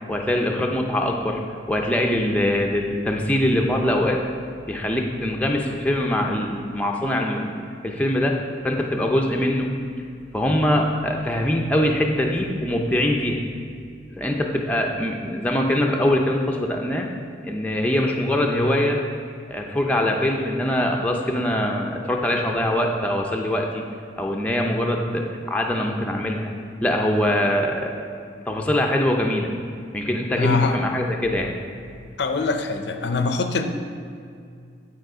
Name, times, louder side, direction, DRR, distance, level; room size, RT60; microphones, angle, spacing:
voice 1, 0.1-1.4 1.7-4.2 4.6-9.7 10.3-13.4 14.2-17.1 17.4-19.0 19.5-23.8 24.2-26.5 26.8-28.1 28.5-29.5 29.9-31.5, left 1 dB, 10° left, 1 dB, 0.5 m, -23 dB
voice 2, 30.4-30.8 32.2-33.6, left 4 dB, 70° left, 7 dB, 0.5 m, -23 dB
9.2 x 4.2 x 4.8 m, 2.3 s
head